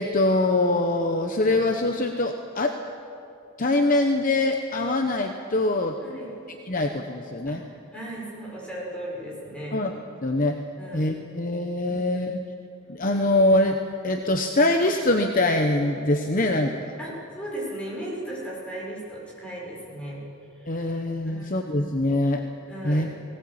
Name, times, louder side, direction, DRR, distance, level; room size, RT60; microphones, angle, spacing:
voice 1, 0.0-2.8 3.6-6.0 6.7-7.6 9.7-9.9 10.2-10.6 10.9-12.4 12.9-13.8 14.0-16.7 20.7-22.4 22.8-23.1, left 2 dB, 40° left, 4 dB, 1.0 m, -23 dB
voice 2, 6.0-6.3 7.5-9.9 10.8-11.1 11.9-12.0 16.4-16.6 17.0-20.2 20.5-20.7 21.2-21.5 22.7-23.1, right 1 dB, 5° left, -5 dB, 6.3 m, -36 dB
19.5 x 18.0 x 8.7 m, 2.7 s
head